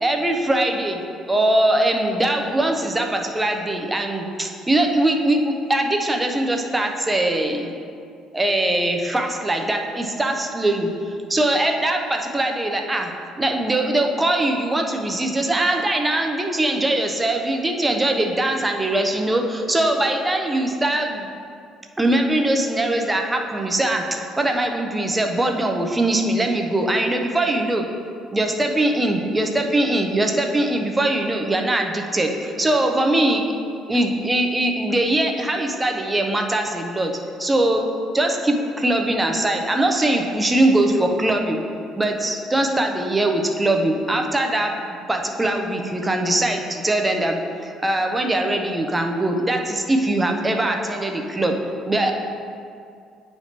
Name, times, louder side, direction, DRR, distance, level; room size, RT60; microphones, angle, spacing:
voice 1, 0.0-7.7 8.3-10.9 11.3-13.1 13.4-21.3 22.0-27.8 28.3-33.4 33.9-37.1 37.4-37.9 38.1-41.6 42.0-51.6 51.9-52.1, right 1 dB, 15° right, 3 dB, 0.7 m, -21 dB
9.4 x 4.4 x 2.9 m, 2.4 s
cardioid pair, 90°, 0 cm